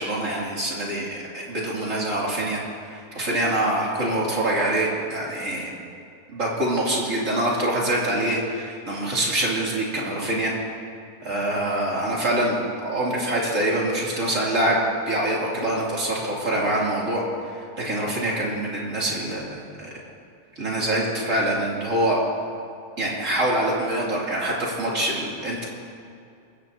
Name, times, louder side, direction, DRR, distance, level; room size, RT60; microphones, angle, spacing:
voice 1, 0.0-2.6 3.1-5.7 6.3-10.5 11.2-14.8 15.1-17.3 17.8-19.9 20.6-22.2 23.0-25.7, right 1 dB, 55° right, -5 dB, 3.2 m, -25 dB
21.5 x 15.0 x 2.8 m, 2.4 s
omnidirectional pair, 1.7 m